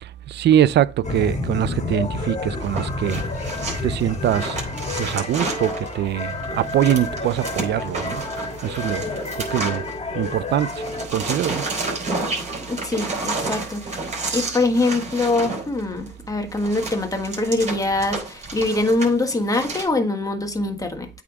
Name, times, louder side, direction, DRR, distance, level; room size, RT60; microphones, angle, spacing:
voice 1, 0.3-3.2 3.8-4.6 5.0-8.2 8.6-9.0 9.4-9.8 10.1-10.8 11.1-11.6, right 11 dB, 60° right, 0.4 m, -22 dB
sound 1, 1.0-11.1, left 3 dB, 35° left, 2.1 m, -29 dB
sound 2, 2.6-10.3 10.6-19.8, right 3 dB, 35° right, 4.0 m, -31 dB
voice 2, 12.7-14.0 14.3-21.1, left 2 dB, 15° left, 1.4 m, -23 dB
8.5 x 3.6 x 4.7 m
cardioid pair, 90°, 20 cm